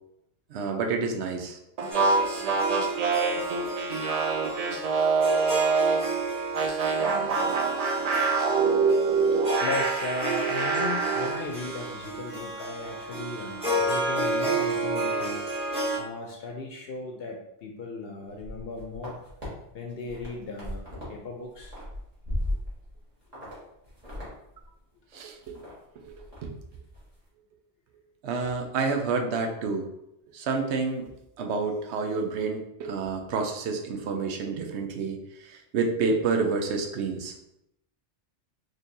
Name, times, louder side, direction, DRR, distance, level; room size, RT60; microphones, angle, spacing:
voice 1, 0.5-1.6 25.1-25.6 26.1-26.5 28.2-29.9 30.3-31.1 31.4-35.2 35.4-37.3, right 4 dB, 85° right, 3 dB, 0.9 m, -29 dB
sound 1, 1.8-6.1 6.5-11.4, right 4 dB, 55° right, 0.4 m, -25 dB
Harp, 1.9-16.0, right 2 dB, 5° right, 0.8 m, -31 dB
voice 2, 9.6-15.4 16.0-19.2 19.7-21.7, left 3 dB, 65° left, 2 dB, 0.7 m, -36 dB
sound 2, 18.3-19.5 19.9-21.1 21.4-22.9 23.3-23.5 23.8-24.3 24.6-24.7 25.1-25.7 26.1-26.4 26.7-27.0, left 1 dB, 40° right, 1.6 m, -36 dB
4.1 x 3.2 x 2.6 m, 0.82 s
omnidirectional pair, 1.1 m